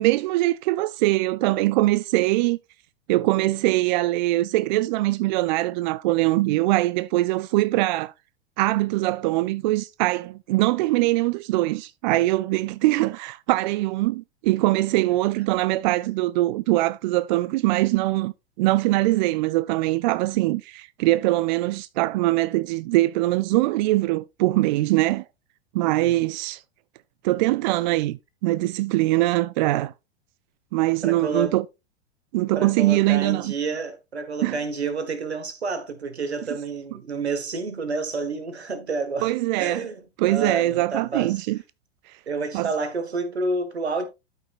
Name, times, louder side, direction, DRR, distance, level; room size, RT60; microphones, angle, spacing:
voice 1, 0.0-2.6 3.1-8.1 8.6-25.3 25.7-26.6 27.2-29.9 30.7-31.6 32.3-33.5 34.4-34.6 39.2-39.8 40.2-41.6 42.1-42.2 42.5-42.7, right 18 dB, 45° right, 0.4 m, -22 dB
voice 2, 25.8-26.2 31.0-31.6 32.6-41.4 42.3-44.1, right 3 dB, 80° right, 1.8 m, -29 dB
12.5 x 5.8 x 2.5 m
figure-of-eight pair, 95°, 32 cm